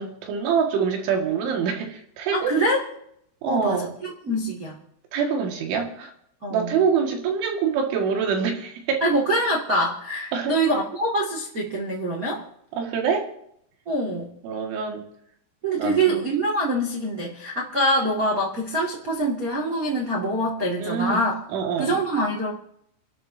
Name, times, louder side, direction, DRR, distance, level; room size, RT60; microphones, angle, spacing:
voice 1, 0.0-2.5 3.4-3.9 5.1-6.1 6.5-9.0 10.3-10.6 12.7-13.3 14.4-15.0 15.8-16.2 20.8-21.2 21.5-22.0, right 6 dB, 70° right, 2 dB, 4.3 m, -25 dB
voice 2, 2.3-2.8 3.4-4.8 6.4-6.7 9.0-12.4 13.8-14.3 15.6-21.3 21.8-22.5, right 1 dB, 40° right, -3 dB, 1.2 m, -24 dB
30.0 x 12.0 x 2.8 m, 0.72 s
omnidirectional pair, 5.8 m